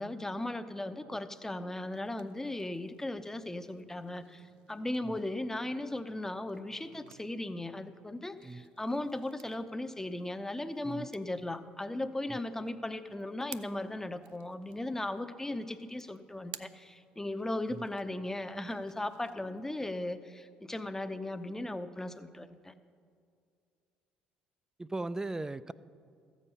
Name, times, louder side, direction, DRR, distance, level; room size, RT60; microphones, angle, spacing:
voice 1, 0.0-22.7, left 1 dB, 10° left, 10 dB, 0.7 m, -37 dB
sound 1, 1.0-19.7, right 14 dB, 80° right, 0.4 m, -57 dB
voice 2, 24.8-25.7, right 2 dB, 15° right, 16 dB, 0.4 m, -38 dB
14.5 x 7.3 x 5.5 m, 2.3 s
hypercardioid pair, 60°, 4 cm